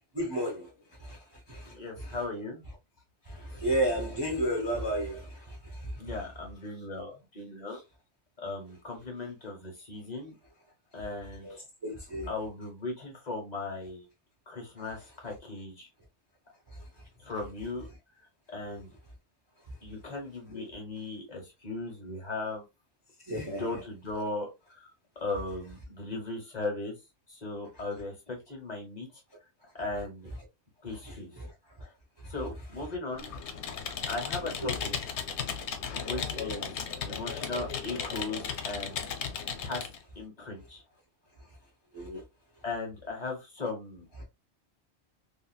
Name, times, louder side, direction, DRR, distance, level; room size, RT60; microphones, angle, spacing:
voice 1, 0.1-0.7 1.0-1.2 1.5-1.7 3.3-5.6 11.4-11.6 11.8-12.3 20.5-20.6 23.3-23.7 34.6-34.8 41.9-42.2, right 1 dB, 30° right, 0.6 m, -31 dB
voice 2, 1.6-2.6 3.5-3.6 6.0-7.8 8.4-10.3 10.9-11.6 12.3-14.1 14.5-15.9 17.2-17.9 18.5-18.9 19.8-22.6 23.4-24.9 25.2-26.9 27.3-29.1 29.7-30.3 30.8-31.3 31.8-31.9 32.3-33.3 34.1-35.2 35.9-36.8 37.1-39.1 39.6-39.9 40.1-40.8 42.6-44.3, left 3 dB, 40° left, 1.1 m, -37 dB
Computer keyboard, 33.1-40.0, left 7 dB, 85° left, 0.9 m, -36 dB
2.8 x 2.7 x 2.3 m
omnidirectional pair, 1.1 m